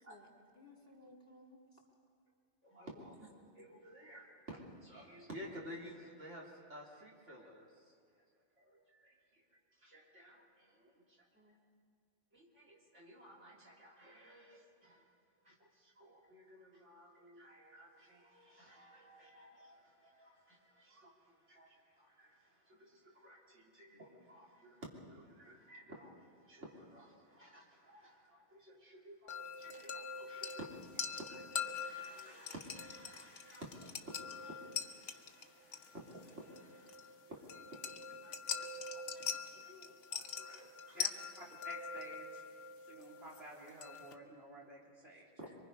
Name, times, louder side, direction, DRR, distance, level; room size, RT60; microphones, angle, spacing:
voice 1, 0.0-1.8 3.0-3.1 11.3-11.6, left 2 dB, 55° left, -1 dB, 3.5 m, -60 dB
voice 2, 2.6-7.9 8.6-11.3 12.3-15.1 15.4-30.7 30.9-41.1 45.4-45.6, right 1 dB, 75° right, -3 dB, 3.6 m, -54 dB
sound 1, 29.3-44.1, left 6 dB, 75° left, 1.4 m, -44 dB
voice 3, 41.4-42.4 42.9-45.3, right 1 dB, 55° right, -4 dB, 4.0 m, -52 dB
24.0 x 23.5 x 5.5 m, 2.3 s
omnidirectional pair, 1.2 m